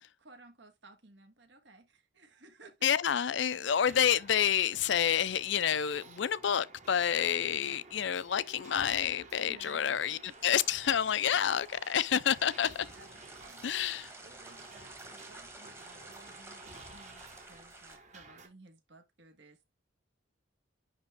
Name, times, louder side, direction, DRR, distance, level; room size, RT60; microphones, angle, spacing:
voice 1, 0.2-2.9 9.4-10.4 12.8-13.1 13.4-14.0 14.2-19.6, right 2 dB, 60° right, 1.5 m, -57 dB
voice 2, 2.8-12.9 13.6-14.1, left 9 dB, 65° left, 0.4 m, -29 dB
sound 1, 3.7-18.5, right 3 dB, 35° right, 1.4 m, -53 dB
sound 2, 10.2-18.0, right 2 dB, 15° right, 1.3 m, -52 dB
10.5 x 3.5 x 3.6 m
head